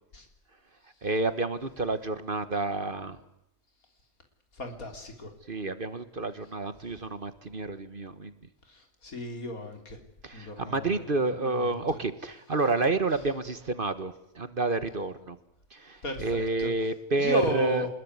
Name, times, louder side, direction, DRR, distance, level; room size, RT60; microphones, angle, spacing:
voice 1, 1.0-3.2 5.5-8.3 10.2-15.4 15.7-17.9, right 3 dB, 40° right, 12 dB, 1.4 m, -29 dB
voice 2, 4.5-5.3 8.7-10.0 10.3-12.0 16.0-16.7 17.2-17.9, left 1 dB, 75° left, 4 dB, 3.8 m, -35 dB
25.5 x 21.0 x 9.6 m, 0.80 s
omnidirectional pair, 1.5 m